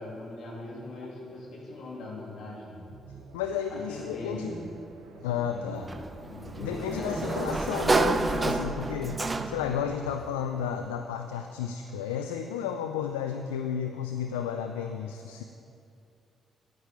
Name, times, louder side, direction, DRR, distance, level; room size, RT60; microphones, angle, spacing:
voice 1, 0.0-2.8 3.9-4.7 5.1-6.0 6.3-7.7 8.7-9.0, left 2 dB, 65° left, -4 dB, 2.8 m, -40 dB
sound 1, 2.8-10.5, right 5 dB, 80° right, 1.1 m, -44 dB
voice 2, 3.3-4.5 5.2-5.9 6.6-9.2 9.5-15.4, left 8 dB, 85° left, 6 dB, 0.3 m, -32 dB
Sliding door, 5.9-9.8, right 3 dB, 30° right, 0.7 m, -29 dB
13.0 x 10.5 x 3.4 m, 2.6 s
hypercardioid pair, 45°, 0 cm